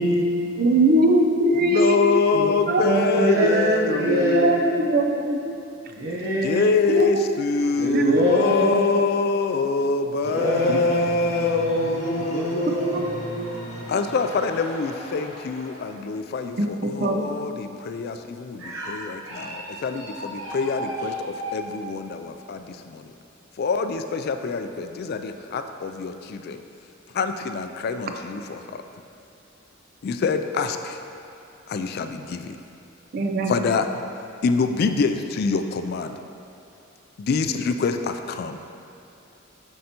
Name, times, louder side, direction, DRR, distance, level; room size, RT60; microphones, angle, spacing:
voice 1, 0.0-0.5 2.3-2.5 2.8-4.7 5.9-6.9 7.8-8.8 10.2-13.9 18.6-18.9 19.2-21.6, right 1 dB, 85° right, -8 dB, 0.9 m, -25 dB
voice 2, 0.6-2.2 2.6-2.8 4.0-5.5 6.9-7.4 7.9-8.2 10.7-10.8 12.8-13.0 16.6-17.2 33.1-33.5, right 1 dB, 50° right, 4 dB, 0.5 m, -21 dB
voice 3, 1.6-4.5 6.4-13.1 13.9-23.1 23.6-26.6 27.1-28.8 30.0-31.0 31.7-32.6 33.5-33.9 34.4-36.1 37.2-38.8, left 4 dB, 50° left, 8 dB, 0.3 m, -25 dB
sound 1, 10.2-15.8, equal, 35° left, 0.8 m, -37 dB
7.5 x 5.4 x 2.9 m, 2.7 s
head